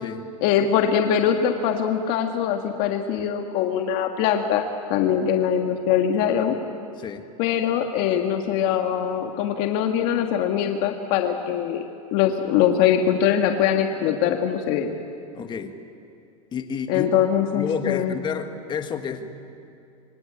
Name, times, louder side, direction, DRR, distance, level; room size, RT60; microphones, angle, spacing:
voice 1, 0.4-4.6 4.9-6.5 7.4-11.9 12.1-14.9 16.9-18.2, left 9 dB, 50° left, 4 dB, 1.7 m, -22 dB
voice 2, 15.3-15.8 16.5-17.1 17.5-19.3, left 7 dB, 25° left, 7 dB, 1.5 m, -30 dB
26.5 x 24.5 x 8.6 m, 2.5 s
supercardioid pair, 140°, 19 cm